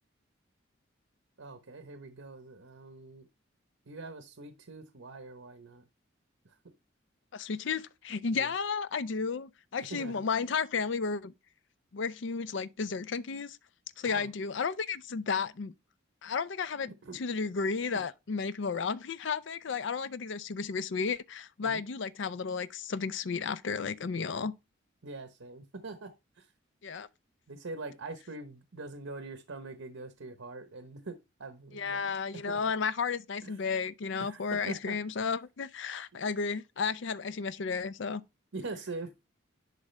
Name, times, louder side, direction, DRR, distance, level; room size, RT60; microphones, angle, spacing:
voice 1, 1.4-3.3 3.9-5.8 6.4-6.5 8.3-8.5 9.9-10.2 14.0-14.3 16.9-17.2 17.9-18.0 21.6-21.8 25.0-26.5 27.5-32.1 32.5-32.6 33.4-33.6 34.2-35.0 38.5-39.2, right 3 dB, 85° right, 1.0 m, -43 dB
voice 2, 7.3-11.3 11.9-13.6 14.0-15.7 16.2-24.5 26.8-27.1 31.7-38.2, left 5 dB, 70° left, 0.5 m, -33 dB
11.0 x 4.9 x 3.3 m
head